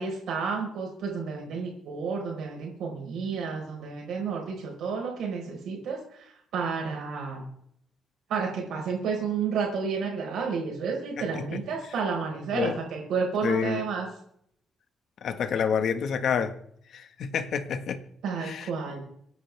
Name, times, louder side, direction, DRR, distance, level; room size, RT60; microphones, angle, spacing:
voice 1, 0.0-7.4 8.3-14.1 18.2-19.0, right 5 dB, 75° right, -2 dB, 4.8 m, -31 dB
voice 2, 11.2-11.6 12.5-12.8 13.4-13.8 15.2-16.5 16.9-18.0 18.4-18.7, left 7 dB, 60° left, 9 dB, 1.6 m, -28 dB
26.0 x 10.0 x 3.6 m, 0.68 s
cardioid pair, 130°, 0 cm